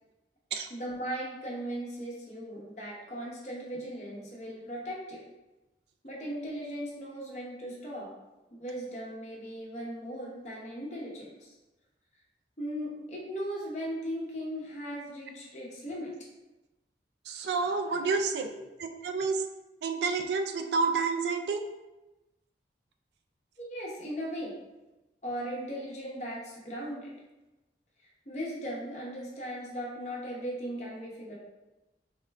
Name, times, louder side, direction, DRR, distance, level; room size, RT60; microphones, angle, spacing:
voice 1, 0.7-5.2 6.0-8.1 8.6-11.5 12.6-16.3 18.1-18.3 23.6-24.5 25.2-27.1 28.0-31.3, equal, 40° left, -4 dB, 0.8 m, -38 dB
voice 2, 17.3-18.5 19.0-19.4 19.8-21.6, right 4 dB, 70° right, 6 dB, 0.3 m, -29 dB
3.7 x 2.1 x 3.3 m, 1.0 s
head